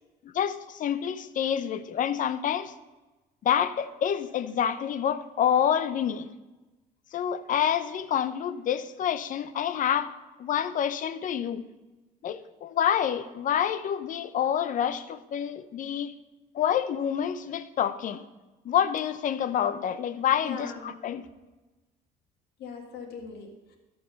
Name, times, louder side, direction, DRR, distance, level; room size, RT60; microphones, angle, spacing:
voice 1, 0.2-2.7 3.4-6.3 7.1-10.1 10.4-11.7 12.2-16.1 16.5-18.2 18.6-20.7 21.0-21.2, left 9 dB, 50° left, 0.7 m, -27 dB
voice 2, 20.4-20.9 22.6-23.8, left 5 dB, 75° left, 1.9 m, -40 dB
13.5 x 4.8 x 6.4 m
cardioid pair, 110°, 17 cm